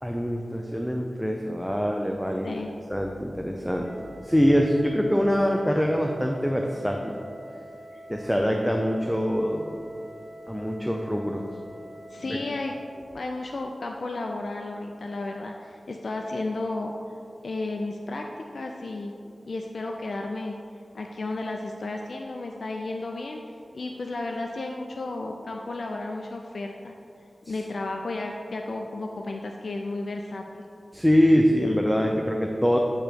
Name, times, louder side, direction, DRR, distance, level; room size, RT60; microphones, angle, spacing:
voice 1, 0.0-2.5 2.9-3.9 4.2-7.2 8.1-9.8 10.5-11.5 12.2-12.4 27.5-27.6 30.9-32.8, equal, ahead, 1 dB, 0.5 m, -24 dB
Wind instrument woodwind instrument, 3.8-12.7, right 1 dB, 25° right, 1.3 m, -46 dB
voice 2, 12.1-12.7 13.1-16.9 17.4-19.1 19.5-20.6 20.9-23.4 23.7-26.9 27.5-30.6, left 2 dB, 75° left, 2 dB, 0.4 m, -33 dB
8.9 x 3.0 x 5.0 m, 2.5 s
wide cardioid pair, 65°, 0 cm